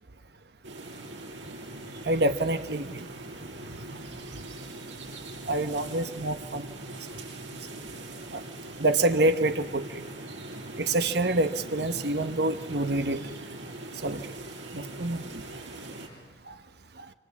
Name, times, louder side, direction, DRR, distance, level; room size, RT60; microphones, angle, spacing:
sound 1, 0.6-16.1, right 2 dB, 80° right, 7.3 m, -41 dB
voice 1, 2.0-3.1 5.5-6.7 8.3-8.4 8.8-10.0 10.8-13.2 14.0-14.3 14.7-15.4 16.5-16.6 17.0-17.1, right 2 dB, 60° right, 9 dB, 1.1 m, -27 dB
26.0 x 26.0 x 8.4 m, 1.3 s
head